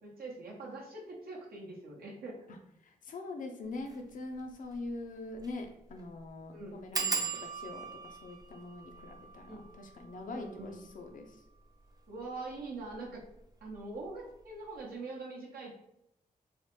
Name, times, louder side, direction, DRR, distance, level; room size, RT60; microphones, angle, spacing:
voice 1, 0.0-2.4 6.5-6.8 9.5-9.6 10.3-10.9 12.1-13.2 13.6-15.7, right 3 dB, 80° right, -3 dB, 0.7 m, -43 dB
voice 2, 2.8-11.4, left 2 dB, 60° left, 4 dB, 0.5 m, -43 dB
sound 1, 3.8-4.0 4.4-4.5 4.7-4.8 5.4-5.6 5.9-6.0 6.9-12.2 12.9-13.4 13.7-14.1 14.3-14.4, right 5 dB, 25° right, 0.4 m, -40 dB
3.2 x 2.0 x 2.9 m, 0.79 s
cardioid pair, 65°, 15 cm